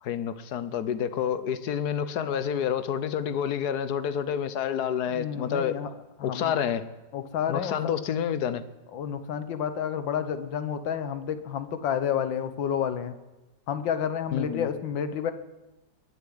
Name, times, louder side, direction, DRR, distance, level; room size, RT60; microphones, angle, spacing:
voice 1, 0.0-5.8 6.2-6.8 7.5-8.6 14.3-14.7, left 8 dB, 65° left, 13 dB, 1.3 m, -28 dB
voice 2, 5.1-5.9 6.2-6.6 7.1-7.8 8.9-13.1 13.7-15.3, left 8 dB, 85° left, 11 dB, 1.8 m, -30 dB
21.0 x 7.1 x 9.3 m, 1.0 s
omnidirectional pair, 2.0 m